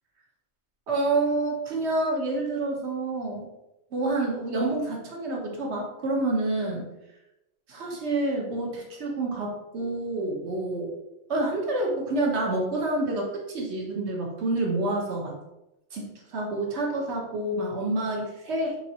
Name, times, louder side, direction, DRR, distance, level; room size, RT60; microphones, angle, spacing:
voice 1, 0.9-3.5 3.9-6.9 7.7-11.0 11.3-15.3 15.9-18.8, right 2 dB, 60° right, -1 dB, 1.3 m, -28 dB
4.3 x 3.8 x 2.8 m, 0.92 s
omnidirectional pair, 1.3 m